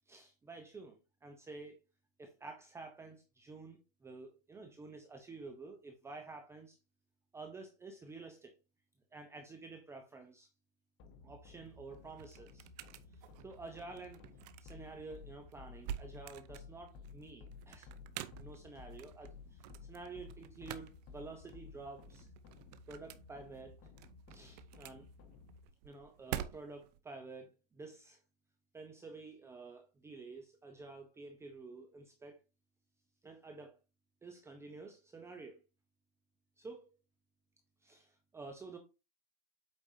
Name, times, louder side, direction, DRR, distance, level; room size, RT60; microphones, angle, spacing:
voice 1, 0.1-1.8 2.2-6.8 7.3-8.5 9.1-10.5 11.2-12.7 13.1-14.2 14.6-17.9 18.4-22.3 22.9-23.8 24.3-25.1 25.8-28.2 28.7-32.4 33.2-33.8 34.2-35.6 36.6-36.9 37.8-38.8, right 3 dB, 10° right, 0.8 m, -50 dB
sound 1, 11.0-25.6, left 4 dB, 35° left, 1.2 m, -55 dB
sound 2, 11.5-27.0, right 11 dB, 45° right, 0.8 m, -49 dB
8.3 x 5.3 x 2.7 m
hypercardioid pair, 135°, 29 cm